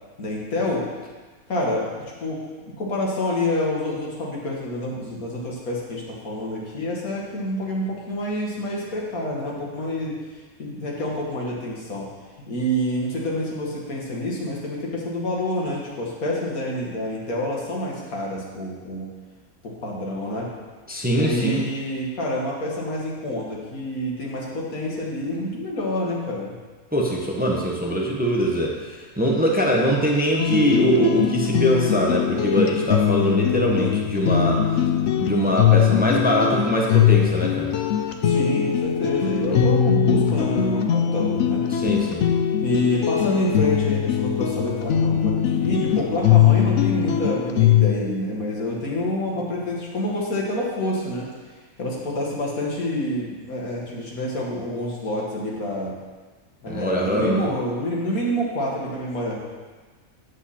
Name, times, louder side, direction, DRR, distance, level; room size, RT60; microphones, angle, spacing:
voice 1, 0.2-0.8 1.5-2.4 2.8-10.1 10.6-12.1 12.5-19.1 19.6-20.5 21.1-26.5 38.2-41.6 42.6-51.3 51.8-56.0 56.6-59.4, left 1 dB, 90° left, -3 dB, 2.2 m, -27 dB
voice 2, 20.9-21.6 26.9-34.6 35.2-37.7 39.5-39.7 41.7-42.2 56.7-57.5, equal, 10° right, -1 dB, 0.9 m, -22 dB
sound 1, 30.4-47.9, left 9 dB, 65° left, 0.9 m, -21 dB
8.9 x 8.0 x 4.3 m, 1.4 s
omnidirectional pair, 1.5 m